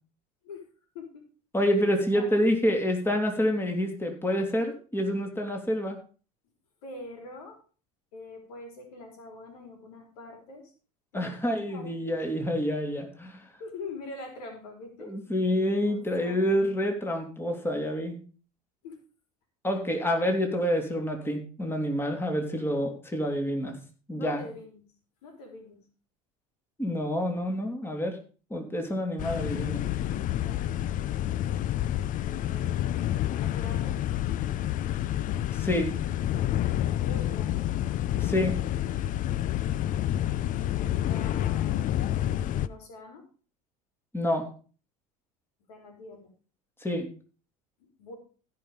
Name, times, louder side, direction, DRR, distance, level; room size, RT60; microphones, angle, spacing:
voice 1, 0.9-1.3 2.0-2.3 6.8-7.6 8.1-10.7 11.1-12.1 13.6-15.1 15.9-16.6 18.8-19.0 19.7-19.8 22.6-22.8 24.1-24.9 25.2-25.8 30.3-30.8 32.2-32.8 33.4-34.0 36.9-37.7 40.8-42.1 42.6-43.2 45.7-46.3 48.0-48.1, left 2 dB, 80° left, 3 dB, 4.0 m, -44 dB
voice 2, 1.5-6.0 11.1-13.5 15.0-18.2 19.6-23.7 24.1-24.4 26.8-28.2 28.5-29.8 35.5-35.9 38.2-38.5 44.1-44.5 46.8-47.1, equal, 10° left, 3 dB, 3.0 m, -28 dB
sound 1, 29.2-42.7, left 12 dB, 45° left, 0.6 m, -29 dB
16.0 x 5.8 x 5.2 m, 0.38 s
hypercardioid pair, 85°, 19 cm